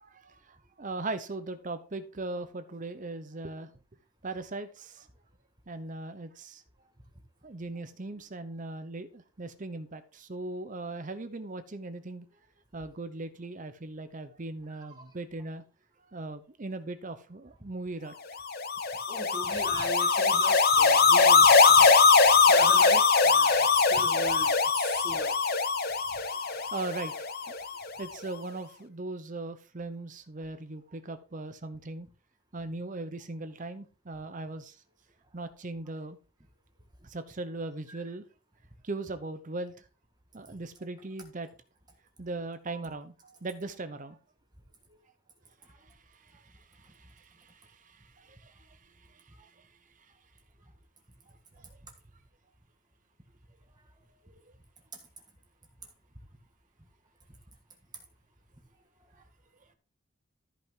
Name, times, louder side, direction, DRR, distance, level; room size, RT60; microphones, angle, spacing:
voice 1, 0.0-3.7 4.2-5.1 5.7-6.6 7.4-12.3 12.7-15.6 16.1-18.1 26.5-27.1 27.5-27.6 28.0-32.1 32.5-34.8 35.3-36.2 37.0-38.3 38.8-39.8 40.3-41.5 42.2-44.2 46.3-49.7, right 2 dB, 35° right, 0.7 m, -39 dB
voice 2, 14.7-15.0 19.1-22.0 22.5-25.4 37.9-38.0 45.6-45.7, right 1 dB, 20° right, 1.6 m, -41 dB
sound 1, 18.5-27.8, left 4 dB, 45° left, 0.8 m, -22 dB
13.5 x 5.7 x 3.7 m
head